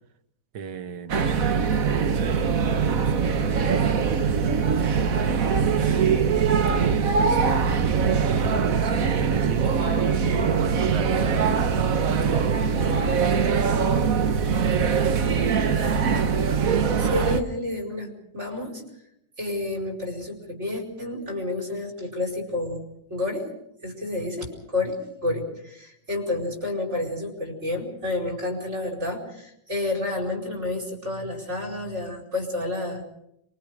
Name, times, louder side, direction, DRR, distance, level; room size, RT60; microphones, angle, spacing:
voice 1, 0.5-2.5 2.9-4.7 5.8-9.8 10.3-13.1, right 7 dB, 90° right, 1.8 m, -35 dB
sound 1, 1.1-17.4, right 6 dB, 55° right, 1.5 m, -22 dB
voice 2, 17.0-18.8 19.4-23.4 23.8-33.0, left 2 dB, 40° right, 5.2 m, -30 dB
27.5 x 23.5 x 5.0 m
omnidirectional pair, 1.8 m